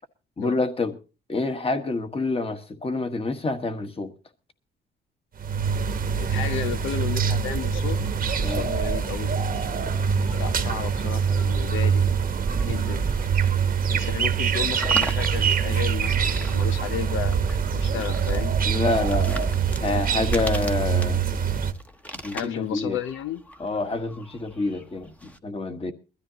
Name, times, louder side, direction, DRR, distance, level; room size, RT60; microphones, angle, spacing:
voice 1, 0.4-0.9 1.3-4.1 8.4-8.7 18.7-19.5 19.8-21.2 22.2-23.0 23.6-25.9, left 3 dB, 30° left, 1.5 m, -27 dB
sound 1, 5.4-21.7, right 6 dB, 45° right, 1.2 m, -24 dB
voice 2, 6.2-8.0 8.4-9.4 10.4-12.0 12.6-13.0 13.9-18.5 22.3-23.4, left 10 dB, 80° left, 0.7 m, -33 dB
sound 2, 6.4-25.4, equal, 5° left, 1.1 m, -42 dB
22.0 x 13.5 x 2.9 m
cardioid pair, 90°, 20 cm